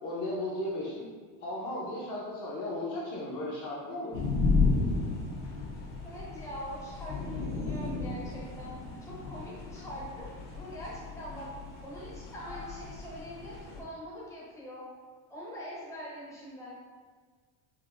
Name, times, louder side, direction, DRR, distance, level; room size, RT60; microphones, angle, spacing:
voice 1, 0.0-1.0 1.4-4.1, left 1 dB, 40° left, -5 dB, 0.7 m, -35 dB
sound 1, 4.1-13.8, left 3 dB, 70° left, 1.1 m, -33 dB
voice 2, 6.0-8.7 9.0-10.3 10.5-11.5 11.8-14.8 15.3-16.7, equal, 5° left, -6 dB, 0.7 m, -43 dB
5.6 x 2.5 x 2.5 m, 1.5 s
cardioid pair, 165°, 48 cm